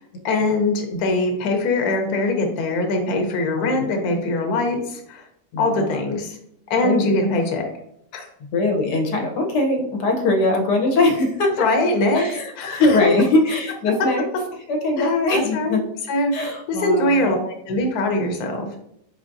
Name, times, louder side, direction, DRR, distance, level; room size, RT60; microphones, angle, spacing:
voice 1, 0.2-5.2 5.6-6.4 6.7-7.7 8.1-8.3 11.6-12.3 12.6-13.0 15.0-15.8 16.1-16.3 16.7-18.7, left 2 dB, 70° left, 3 dB, 1.2 m, -22 dB
voice 2, 5.5-6.0 6.8-7.1 8.5-11.5 12.1-14.3 14.7-15.8 16.3-17.3, left 2 dB, 85° left, 2 dB, 1.4 m, -21 dB
4.6 x 3.9 x 2.5 m, 0.73 s
omnidirectional pair, 1.8 m